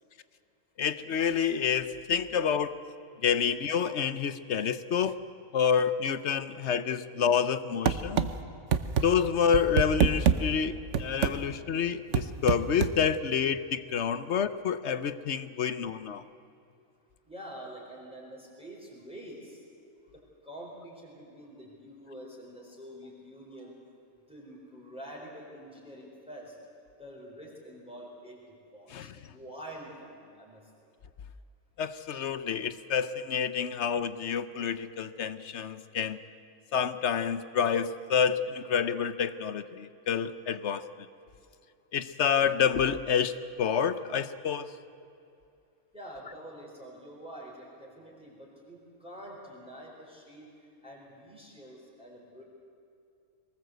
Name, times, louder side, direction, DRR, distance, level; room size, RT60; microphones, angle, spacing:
voice 1, 0.8-2.8 3.2-5.2 5.5-8.3 9.0-16.2 28.9-29.1 31.8-36.2 36.7-40.8 41.9-44.7, left 7 dB, 60° left, 13 dB, 1.0 m, -28 dB
sound 1, 7.9-8.3 8.7-9.1 9.5-10.4 10.9-11.4 12.1-13.0, right 8 dB, 60° right, 1.2 m, -24 dB
voice 2, 17.3-19.6 20.1-23.8 24.3-26.6 27.0-30.6 45.9-50.5 50.8-52.4, equal, 5° right, -3 dB, 4.4 m, -46 dB
22.5 x 19.0 x 8.0 m, 2.6 s
omnidirectional pair, 1.4 m